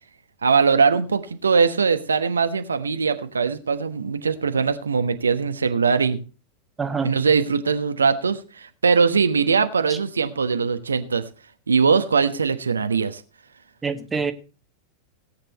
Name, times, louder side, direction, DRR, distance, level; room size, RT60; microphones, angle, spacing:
voice 1, 0.4-6.2 7.0-11.2 11.7-13.2, right 5 dB, 75° right, 1.1 m, -21 dB
voice 2, 6.8-7.1 13.8-14.3, right 5 dB, 15° right, 1.5 m, -25 dB
17.5 x 8.8 x 4.1 m
figure-of-eight pair, 90°, 0 cm